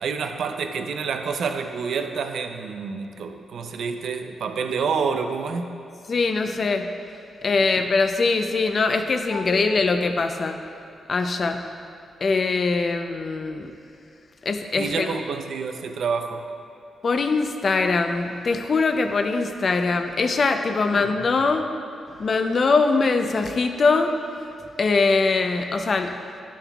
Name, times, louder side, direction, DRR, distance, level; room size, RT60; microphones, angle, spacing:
voice 1, 0.0-5.7 14.8-16.4 20.9-21.1, right 5 dB, 75° right, 7 dB, 0.5 m, -28 dB
voice 2, 6.1-6.9 7.4-10.6 11.1-11.6 12.2-13.7 14.4-15.2 17.0-21.6 22.2-24.1 24.8-26.1, left 4 dB, 45° left, 6 dB, 0.5 m, -22 dB
11.0 x 7.2 x 2.3 m, 2.7 s
cardioid pair, 90°, 0 cm